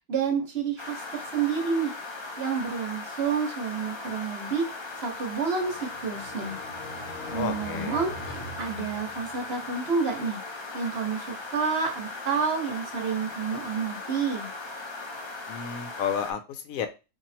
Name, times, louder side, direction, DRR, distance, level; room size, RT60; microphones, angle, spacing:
voice 1, 0.1-1.9 2.4-4.7 5.0-6.6 7.3-10.4 10.7-14.5, right 5 dB, 55° right, 3 dB, 1.0 m, -29 dB
sound 1, 0.8-16.3, left 3 dB, 45° left, 0.3 m, -38 dB
sound 2, 5.1-9.6, left 1 dB, 60° left, 1.0 m, -42 dB
voice 2, 7.3-8.0 15.5-16.9, left 7 dB, 85° left, 9 dB, 1.0 m, -32 dB
3.0 x 2.7 x 4.1 m, 0.28 s
omnidirectional pair, 1.4 m